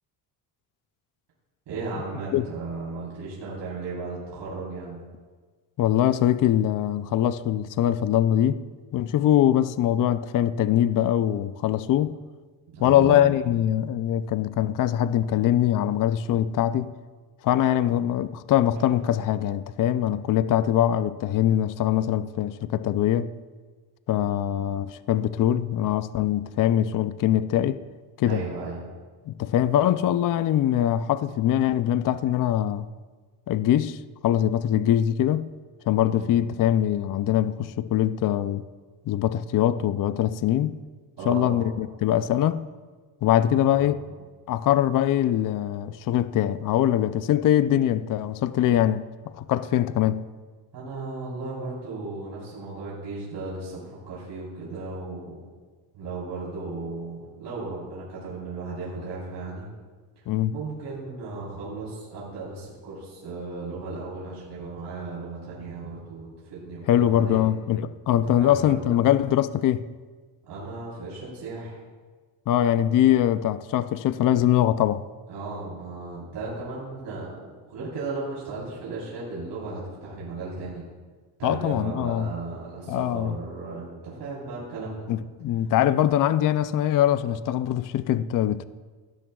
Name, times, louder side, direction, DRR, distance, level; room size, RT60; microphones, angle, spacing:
voice 1, 1.7-5.0 12.7-13.3 24.1-24.5 28.2-28.8 36.1-36.3 41.2-41.8 43.6-44.1 50.7-55.5 55.9-59.7 60.2-67.5 68.1-69.0 70.4-71.8 75.3-80.8 81.4-85.1 85.5-85.6, right 3 dB, 80° right, 3.9 m, -36 dB
voice 2, 5.8-8.6 8.9-12.2 12.8-16.9 17.4-23.3 24.1-27.8 28.2-28.4 29.3-32.9 33.5-35.5 35.9-38.7 39.1-40.8 41.3-42.6 43.2-44.0 44.5-50.2 60.3-60.5 66.9-69.8 72.5-75.0 81.4-82.3 82.9-83.3 85.1-88.6, left 11 dB, 50° left, 0.5 m, -23 dB
sound 1, 18.8-19.8, right 4 dB, 45° right, 1.5 m, -50 dB
17.0 x 12.5 x 2.3 m
cardioid pair, 110°, 42 cm